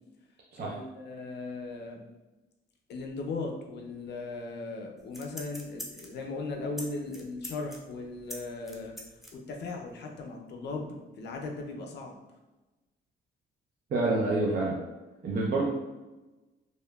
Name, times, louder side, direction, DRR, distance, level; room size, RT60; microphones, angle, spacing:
voice 1, 0.6-2.0 2.9-9.0 9.3-12.2, left 3 dB, 60° left, 2 dB, 0.5 m, -38 dB
sound 1, 5.0-6.2 6.7-6.9 7.1-9.3 9.7-9.8, equal, ahead, 0.5 m, -42 dB
voice 2, 13.9-14.7 15.2-15.6, right 2 dB, 50° right, -4 dB, 0.5 m, -27 dB
2.8 x 2.2 x 2.2 m, 1.1 s
cardioid pair, 90°, 20 cm